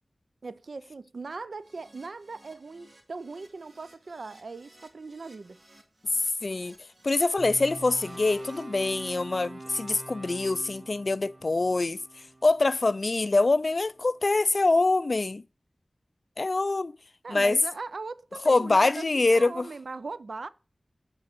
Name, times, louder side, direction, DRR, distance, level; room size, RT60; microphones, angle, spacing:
voice 1, 0.4-5.6 17.2-20.5, right 3 dB, 80° right, 0.4 m, -39 dB
Keyboard (musical), 1.6-9.1, right 1 dB, 60° right, 2.1 m, -58 dB
voice 2, 6.4-6.7 7.0-12.0 12.4-15.4 16.4-16.9 17.3-17.6 18.5-19.7, left 3 dB, 60° left, 0.3 m, -24 dB
sound 1, 7.4-13.6, right 2 dB, 35° right, 0.7 m, -45 dB
8.5 x 4.4 x 6.0 m
cardioid pair, 40°, 0 cm